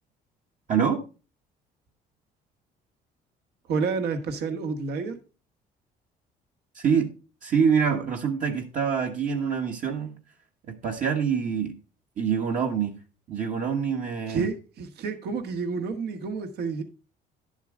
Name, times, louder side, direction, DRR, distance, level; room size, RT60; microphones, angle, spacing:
voice 1, 0.7-1.0 6.7-7.1 7.4-10.2 10.7-11.7 12.2-13.0 13.3-14.5, right 7 dB, 50° right, 1.4 m, -25 dB
voice 2, 3.7-5.2 14.3-16.8, right 4 dB, 75° right, 1.7 m, -29 dB
11.0 x 7.3 x 3.7 m
cardioid pair, 110°, 17 cm